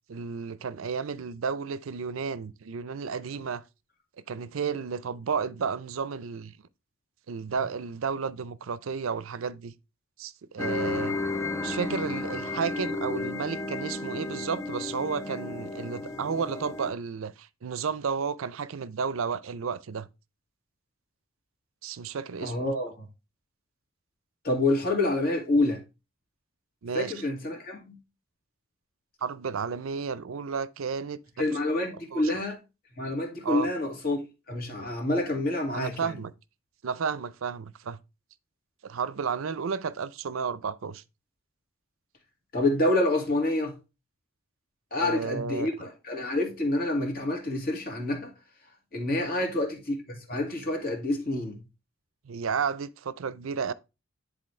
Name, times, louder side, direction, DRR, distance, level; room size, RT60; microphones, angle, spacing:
voice 1, 0.1-3.6 4.3-6.6 7.3-9.7 10.2-11.2 11.6-20.1 21.8-22.5 26.8-27.1 29.2-31.5 32.1-32.3 33.4-33.7 35.7-36.3 36.8-38.0 38.8-41.0 44.9-45.7 49.2-49.4 52.3-53.7, right 6 dB, 70° right, 0.5 m, -32 dB
sound 1, 10.6-16.9, left 3 dB, 15° left, 0.6 m, -33 dB
voice 2, 22.4-23.1 24.4-25.8 26.9-28.0 31.4-32.6 33.0-34.2 34.5-36.2 42.5-43.7 44.9-48.3 48.9-49.9 50.3-51.6, left 2 dB, 45° left, 2.1 m, -27 dB
10.0 x 4.1 x 3.2 m
head